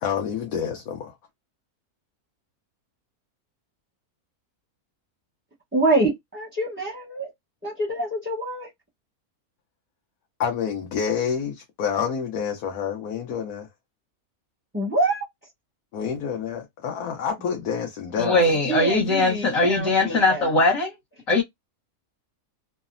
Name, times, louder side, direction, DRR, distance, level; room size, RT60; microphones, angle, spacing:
voice 1, 0.0-1.1 10.4-13.7 15.9-18.5, left 7 dB, 85° left, 1.2 m, -28 dB
voice 2, 5.7-7.3 7.6-8.7 14.7-15.2 18.7-20.6, right 2 dB, 10° right, 0.6 m, -26 dB
voice 3, 18.2-20.9 21.3-21.4, left 2 dB, 65° left, 1.5 m, -20 dB
3.2 x 2.1 x 2.4 m
omnidirectional pair, 1.6 m